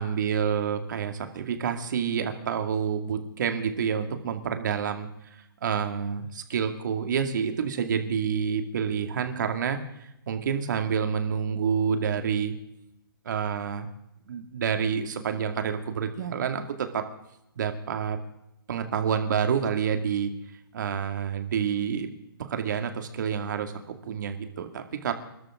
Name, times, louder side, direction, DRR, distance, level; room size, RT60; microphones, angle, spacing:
voice 1, 0.0-5.1 5.6-9.8 10.3-12.5 13.3-13.9 14.3-17.1 17.6-18.2 18.7-20.3 20.7-22.1 22.5-25.1, right 7 dB, 50° right, 6 dB, 2.4 m, -28 dB
27.5 x 12.5 x 3.8 m, 0.82 s
hypercardioid pair, 165°, 12 cm